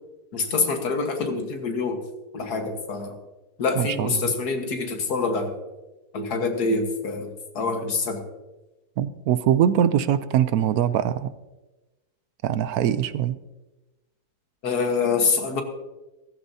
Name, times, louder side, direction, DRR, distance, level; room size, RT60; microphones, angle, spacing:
voice 1, 0.3-2.0 2.3-3.2 3.6-5.5 6.1-8.2 14.6-15.6, left 4 dB, 80° left, 5 dB, 2.0 m, -25 dB
voice 2, 3.8-4.3 9.0-11.3 12.4-13.4, right 10 dB, 75° right, 14 dB, 1.1 m, -22 dB
15.0 x 15.0 x 2.8 m, 1.1 s
omnidirectional pair, 1.6 m